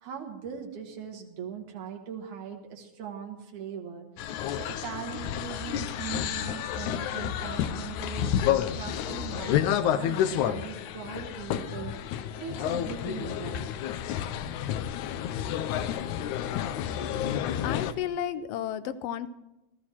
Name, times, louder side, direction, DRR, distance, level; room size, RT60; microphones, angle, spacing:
voice 1, 0.0-11.9 12.4-13.6, right 8 dB, 90° right, 1 dB, 2.9 m, -40 dB
sound 1, 4.2-17.9, left 10 dB, 90° left, 2.2 m, -30 dB
voice 2, 17.6-19.3, left 10 dB, 70° left, 12 dB, 1.5 m, -32 dB
18.0 x 13.5 x 4.4 m, 0.94 s
omnidirectional pair, 3.3 m